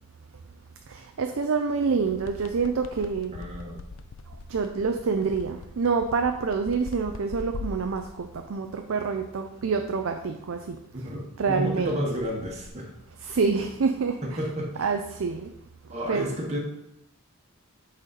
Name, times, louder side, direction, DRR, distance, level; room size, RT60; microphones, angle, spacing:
voice 1, 0.9-3.3 4.5-10.8 11.4-12.0 13.2-14.2 14.8-15.5 16.1-16.3, right 5 dB, 70° right, 5 dB, 0.5 m, -27 dB
sound 1, 2.0-8.5 12.4-12.7, left 4 dB, 65° left, 0.4 m, -42 dB
voice 2, 3.3-3.8 10.9-12.9 14.2-14.9 15.9-16.6, equal, 30° right, -2 dB, 1.3 m, -31 dB
8.0 x 4.1 x 4.2 m, 0.84 s
head